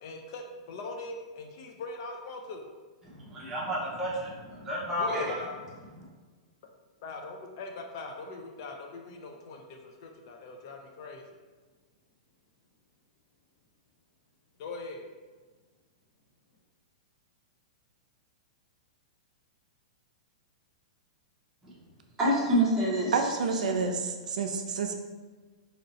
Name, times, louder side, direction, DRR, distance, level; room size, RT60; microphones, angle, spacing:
voice 1, 0.0-2.7 5.0-5.6 7.0-11.2 14.6-15.1, left 3 dB, 35° left, 3 dB, 0.4 m, -41 dB
voice 2, 3.1-5.4 22.2-23.2, equal, 10° right, -7 dB, 0.7 m, -28 dB
voice 3, 23.1-24.9, right 4 dB, 85° right, 4 dB, 0.5 m, -29 dB
2.7 x 2.6 x 4.0 m, 1.4 s
supercardioid pair, 175°, 4 cm